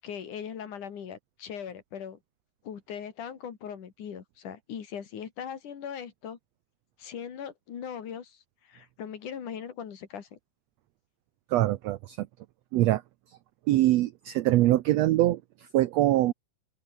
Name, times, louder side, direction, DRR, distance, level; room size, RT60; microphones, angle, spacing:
voice 1, 0.0-2.2 2.6-6.4 7.0-10.4, left 8 dB, 65° left, 3.9 m, -40 dB
voice 2, 11.5-12.3 12.7-13.0 13.3-13.4 13.7-16.3, right 15 dB, 85° right, 1.5 m, -24 dB
omnidirectional pair, 3.8 m